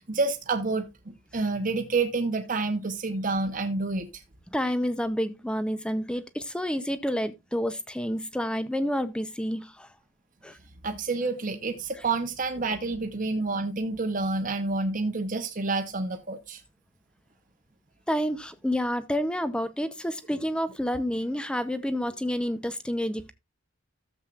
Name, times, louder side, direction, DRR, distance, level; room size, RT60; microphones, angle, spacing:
voice 1, 0.0-4.1 10.8-16.6, right 3 dB, 40° right, 0.9 m, -28 dB
voice 2, 4.5-9.9 10.4-10.6 18.1-23.3, equal, 5° left, 0.6 m, -29 dB
13.5 x 7.3 x 2.4 m
head